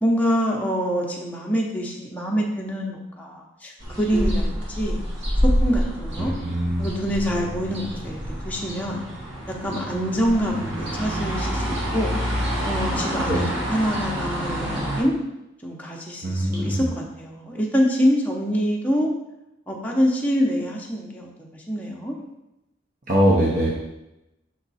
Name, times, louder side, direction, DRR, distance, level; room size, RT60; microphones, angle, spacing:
voice 1, 0.0-3.7 4.0-5.0 5.4-6.3 6.8-8.2 8.4-9.0 9.5-12.2 12.7-15.1 15.6-19.1 19.7-22.1, equal, 10° left, -2 dB, 0.8 m, -25 dB
sound 1, 3.8-15.0, equal, 85° right, 1.7 m, -27 dB
voice 2, 6.2-6.8 13.3-13.4 16.2-16.8 23.1-23.7, equal, 45° right, -5 dB, 0.9 m, -21 dB
6.1 x 3.7 x 4.1 m, 0.93 s
head